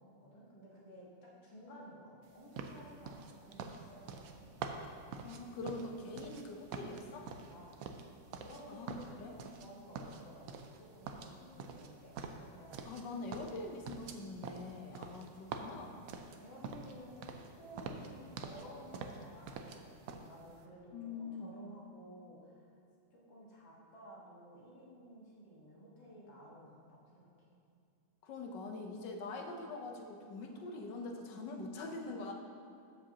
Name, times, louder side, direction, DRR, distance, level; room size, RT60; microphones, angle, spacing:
voice 1, 0.0-4.5 7.5-7.9 8.4-9.0 9.4-12.8 16.4-22.7 23.1-27.5 30.4-31.0, equal, 90° left, -5 dB, 2.3 m, -54 dB
sound 1, 2.6-6.4 6.7-8.6 8.9-9.7 10.0-10.8 11.1-13.1 13.3-17.0 17.2-17.5 17.8-18.7 18.9-19.8 20.1-20.3, right 5 dB, 75° right, 0.8 m, -45 dB
voice 2, 5.2-7.3 8.7-9.4 12.8-16.0 20.9-21.5 28.2-32.3, left 3 dB, 75° left, 2 dB, 1.4 m, -44 dB
13.5 x 5.2 x 2.8 m, 2.6 s
omnidirectional pair, 2.0 m